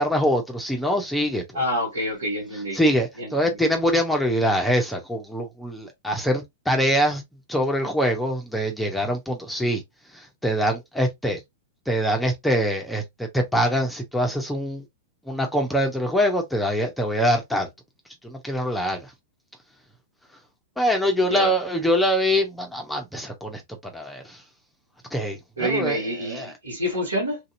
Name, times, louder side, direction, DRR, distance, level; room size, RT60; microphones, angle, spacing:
voice 1, 0.0-1.6 2.7-7.2 7.5-9.8 10.1-11.4 11.9-14.8 15.3-17.7 18.2-19.1 20.8-23.6 23.9-24.4 25.1-26.5, equal, 5° left, 0.8 m, -24 dB
voice 2, 1.5-2.8 3.2-3.5 21.3-21.5 25.6-27.4, equal, 90° right, 2.0 m, -27 dB
3.3 x 2.8 x 2.6 m
hypercardioid pair, 110°, 0 cm